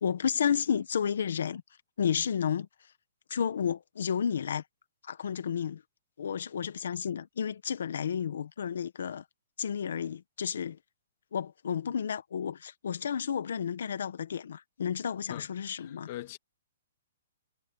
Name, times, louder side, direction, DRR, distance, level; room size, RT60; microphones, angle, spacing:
voice 1, 0.0-1.6 2.0-2.7 3.3-4.6 5.0-5.8 6.2-9.2 9.6-10.8 11.3-16.1, left 7 dB, 70° left, 1.4 m, -31 dB
voice 2, 15.3-16.4, left 15 dB, 35° left, 2.3 m, -43 dB
hypercardioid pair, 170°, 0 cm